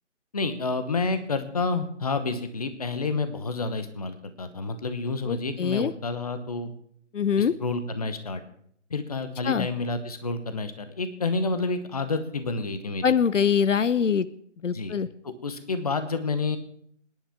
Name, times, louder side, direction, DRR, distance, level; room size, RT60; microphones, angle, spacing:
voice 1, 0.3-6.7 7.4-8.4 8.9-13.1 14.7-15.0 15.2-16.6, left 3 dB, 30° left, 10 dB, 0.9 m, -29 dB
voice 2, 5.3-5.9 7.1-7.5 9.5-9.7 13.0-14.3 14.6-15.1, left 7 dB, 75° left, 16 dB, 0.7 m, -23 dB
25.0 x 10.5 x 3.6 m, 0.66 s
figure-of-eight pair, 165°, 37 cm